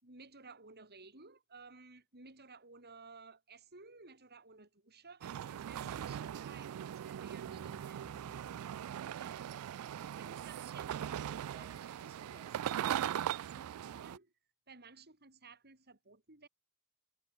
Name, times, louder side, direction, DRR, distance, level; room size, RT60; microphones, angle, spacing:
voice 1, 0.0-8.8 9.1-9.5 10.0-14.3 14.7-16.5, right 4 dB, 50° right, 5.4 m, -57 dB
sound 1, 5.2-14.2, right 10 dB, 75° right, 0.3 m, -40 dB
sound 2, 7.5-13.4, equal, 10° right, 2.3 m, -62 dB
head